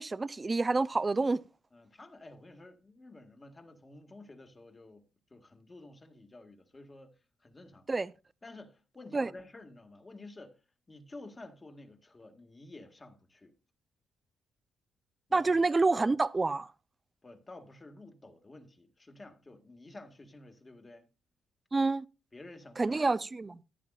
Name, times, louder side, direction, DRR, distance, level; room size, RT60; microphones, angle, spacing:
voice 1, 0.0-1.4 7.9-8.1 9.1-9.3 15.3-16.7 21.7-22.0 22.8-23.6, right 3 dB, 25° right, 0.6 m, -28 dB
voice 2, 1.7-5.0 5.3-7.1 7.4-7.9 8.4-10.6 10.9-13.5 15.3-15.5 17.2-21.0 22.3-23.0, left 2 dB, 25° left, 1.9 m, -51 dB
14.0 x 10.5 x 2.5 m
cardioid pair, 90°, 0 cm